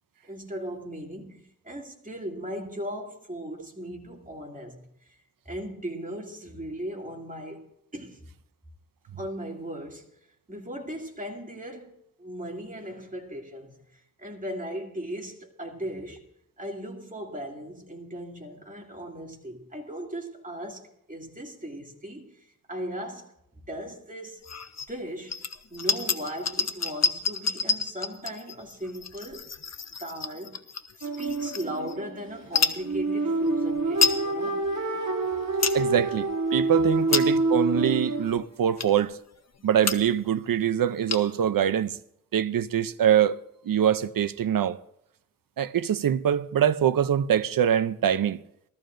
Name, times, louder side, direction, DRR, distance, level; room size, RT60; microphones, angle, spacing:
voice 1, 0.3-4.9 5.5-7.7 7.9-8.2 9.2-10.1 10.5-13.8 14.2-16.3 16.6-22.3 22.7-23.3 23.6-24.4 24.9-25.4 25.7-29.5 30.0-30.6 31.0-34.7, equal, 25° right, 2.3 m, -37 dB
sound 1, 24.4-24.9 25.3-32.0 32.4-32.8 33.4-33.5 33.8-34.2 34.7-34.8 35.3-35.8 36.3-36.5 36.9-37.5 38.1-38.2 38.8-39.1 39.6-39.7 39.8-40.2 40.5-40.6 40.8-41.5, left 5 dB, 55° left, 0.8 m, -29 dB
sound 2, 31.0-38.3, right 2 dB, 60° right, 2.5 m, -27 dB
voice 2, 35.7-39.1 39.6-42.0 42.3-43.4 43.7-44.8 45.6-48.4, right 9 dB, 90° right, 0.5 m, -24 dB
20.5 x 14.0 x 2.5 m
wide cardioid pair, 60°, 33 cm